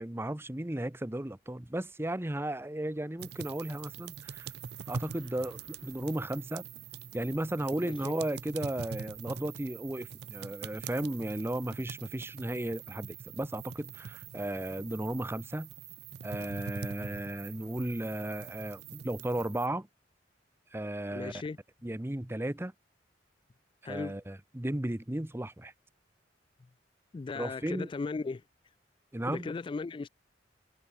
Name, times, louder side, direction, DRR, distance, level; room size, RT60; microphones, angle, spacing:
voice 1, 0.0-4.5 4.9-6.7 7.1-15.7 16.2-19.9 20.7-21.3 21.8-22.7 23.8-25.7 27.3-27.9 29.1-29.5, right 1 dB, 15° right, 0.8 m, -35 dB
sound 1, 2.9-9.3, right 2 dB, 80° right, 4.1 m, -64 dB
sound 2, 3.2-19.7, right 7 dB, 60° right, 0.5 m, -44 dB
voice 2, 7.8-8.1 21.1-21.6 23.8-24.2 27.1-28.4 29.3-30.1, left 4 dB, 30° left, 0.3 m, -37 dB
head